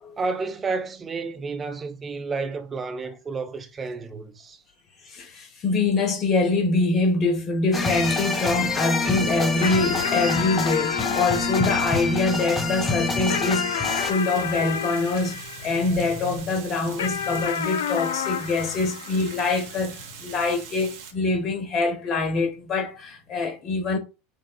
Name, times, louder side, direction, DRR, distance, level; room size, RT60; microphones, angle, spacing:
voice 1, 0.2-4.6, right 4 dB, 25° right, 0.7 m, -31 dB
voice 2, 5.0-24.0, left 3 dB, 40° left, 1.1 m, -24 dB
sound 1, 7.7-14.1, left 3 dB, 20° left, 0.8 m, -27 dB
sound 2, 9.6-16.3 17.0-19.8, left 8 dB, 70° left, 0.3 m, -31 dB
Water, 13.8-21.1, right 8 dB, 60° right, 0.8 m, -43 dB
6.4 x 2.3 x 2.3 m
figure-of-eight pair, 75°, 0 cm